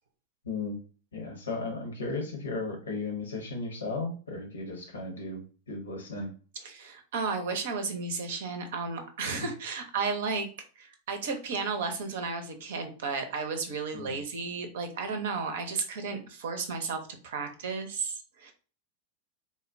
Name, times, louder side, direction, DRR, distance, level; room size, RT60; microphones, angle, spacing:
voice 1, 0.4-0.8 1.1-5.4 5.7-6.3 9.4-9.5 13.9-14.2, left 3 dB, 70° left, 3 dB, 0.9 m, -35 dB
voice 2, 6.6-10.5 10.8-18.5, right 4 dB, 55° right, 6 dB, 0.6 m, -33 dB
3.8 x 2.1 x 2.5 m, 0.39 s
figure-of-eight pair, 90°, 0 cm